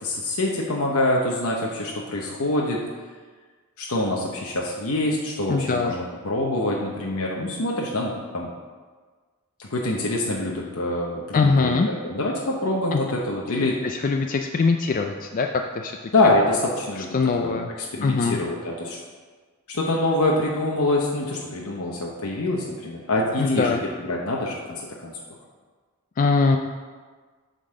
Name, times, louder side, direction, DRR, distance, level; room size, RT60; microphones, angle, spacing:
voice 1, 0.0-2.8 3.8-8.5 9.6-13.7 16.1-17.6 17.9-19.0 19.7-23.8 24.1-25.1, left 2 dB, 75° left, -2 dB, 0.9 m, -25 dB
voice 2, 5.5-5.9 11.3-11.9 12.9-13.0 13.5-15.5 15.7-16.1 17.1-17.7 18.0-18.4 23.4-23.8 26.2-26.6, left 4 dB, 40° left, 4 dB, 0.3 m, -22 dB
8.2 x 4.0 x 6.4 m, 1.5 s
head